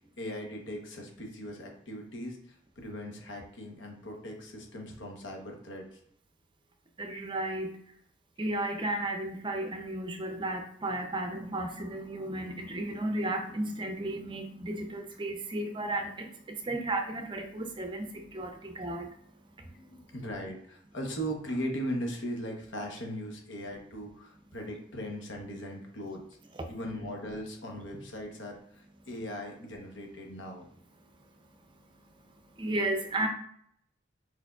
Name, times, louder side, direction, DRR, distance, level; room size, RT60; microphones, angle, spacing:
voice 1, 0.2-6.0 18.1-18.2 19.6-26.2 26.7-30.6, equal, 70° left, 1 dB, 1.1 m, -39 dB
voice 2, 7.0-7.7 8.4-16.3 16.7-19.1 32.6-33.3, right 1 dB, 25° right, 5 dB, 0.5 m, -33 dB
4.6 x 4.4 x 2.4 m, 0.66 s
head